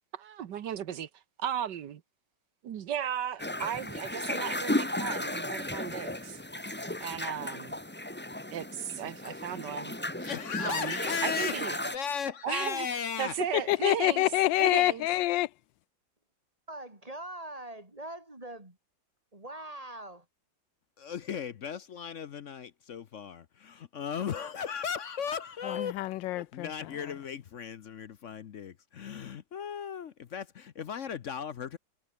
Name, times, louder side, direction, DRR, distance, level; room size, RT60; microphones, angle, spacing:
voice 1, 0.1-1.1 1.4-2.0 2.6-6.4 7.0-7.8 8.5-9.9 10.6-11.8 12.4-12.9 13.2-14.2 14.6-15.1, right 9 dB, 70° right, 1.7 m, -35 dB
sound 1, 3.4-12.0, left 1 dB, 5° left, 1.1 m, -35 dB
voice 2, 10.2-11.6 11.9-13.3 21.0-26.0 26.3-31.8, left 7 dB, 55° left, 0.9 m, -36 dB
voice 3, 13.5-15.5 25.6-26.9, left 16 dB, 85° left, 1.3 m, -27 dB
voice 4, 16.7-18.8 19.3-20.3, right 1 dB, 20° right, 3.4 m, -42 dB
omnidirectional pair, 2.0 m